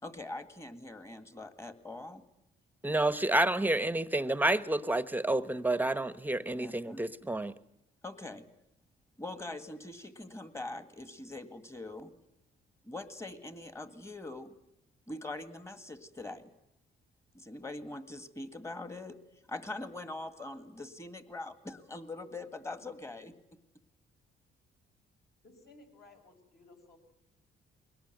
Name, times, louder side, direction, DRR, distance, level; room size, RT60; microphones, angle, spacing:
voice 1, 0.0-2.2 6.5-7.0 8.0-8.5 9.2-12.1 12.8-14.5 15.1-16.5 17.3-19.2 19.5-23.3, left 2 dB, 15° left, 11 dB, 1.8 m, -43 dB
voice 2, 2.8-7.5, right 1 dB, 10° right, 15 dB, 1.0 m, -29 dB
voice 3, 25.4-27.0, left 2 dB, 50° left, 3 dB, 5.6 m, -57 dB
22.0 x 18.5 x 9.1 m, 0.79 s
cardioid pair, 90°, 20 cm